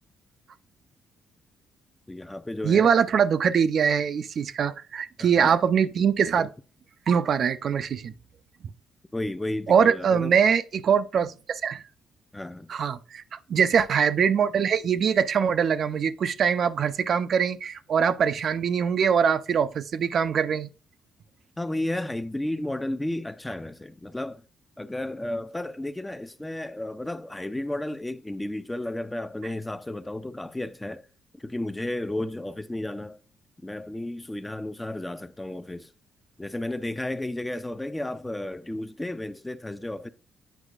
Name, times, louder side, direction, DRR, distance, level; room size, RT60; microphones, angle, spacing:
voice 1, 2.1-2.9 5.2-5.6 9.1-10.4 11.2-11.3 12.3-12.7 21.6-24.4 24.8-31.0 31.3-33.2 33.6-35.9 36.4-40.1, left 1 dB, 10° left, 0.5 m, -33 dB
voice 2, 2.6-6.5 7.1-8.1 9.7-11.8 12.7-20.7, right 7 dB, 60° right, 0.4 m, -23 dB
8.0 x 5.0 x 2.4 m
cardioid pair, 90°, 0 cm